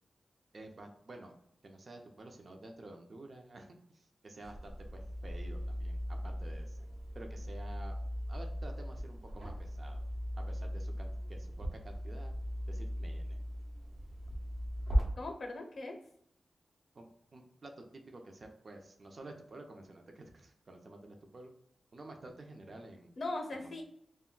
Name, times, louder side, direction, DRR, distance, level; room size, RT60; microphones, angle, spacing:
voice 1, 0.5-6.8 7.1-8.0 8.3-10.0 10.4-12.3 12.7-13.4 16.9-21.5 21.9-23.2 23.5-23.8, right 2 dB, 50° right, 3 dB, 0.5 m, -51 dB
sound 1, 4.4-15.0, equal, 80° right, 0.9 m, -38 dB
voice 2, 15.2-16.0 23.2-23.8, left 2 dB, 60° left, 3 dB, 0.5 m, -39 dB
2.2 x 2.1 x 3.7 m, 0.72 s
wide cardioid pair, 80°, 0 cm